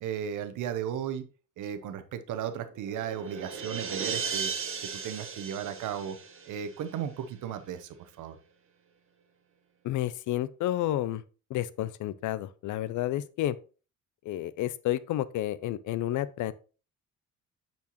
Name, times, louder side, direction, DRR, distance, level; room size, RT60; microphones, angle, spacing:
voice 1, 0.0-1.2 1.6-4.5 4.9-6.2 6.5-8.4, right 9 dB, 80° right, 0.8 m, -35 dB
sound 1, 2.6-7.2, right 6 dB, 45° right, 1.2 m, -37 dB
voice 2, 9.8-11.2 11.5-13.6 14.2-16.5, left 13 dB, 75° left, 0.5 m, -30 dB
8.4 x 4.4 x 3.0 m
cardioid pair, 90°, 30 cm